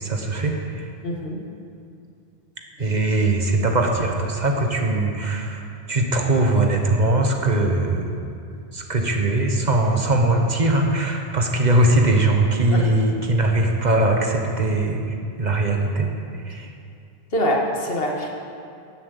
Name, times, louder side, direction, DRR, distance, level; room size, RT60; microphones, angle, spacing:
voice 1, 0.0-0.9 2.8-5.6 5.9-8.2 8.7-15.0 15.4-16.1 16.4-16.7, right 2 dB, 45° right, 2 dB, 1.3 m, -20 dB
voice 2, 1.0-1.4 2.8-2.9 12.7-12.8 17.3-18.3, equal, 65° left, -1 dB, 1.8 m, -24 dB
12.0 x 7.5 x 8.2 m, 2.5 s
omnidirectional pair, 1.1 m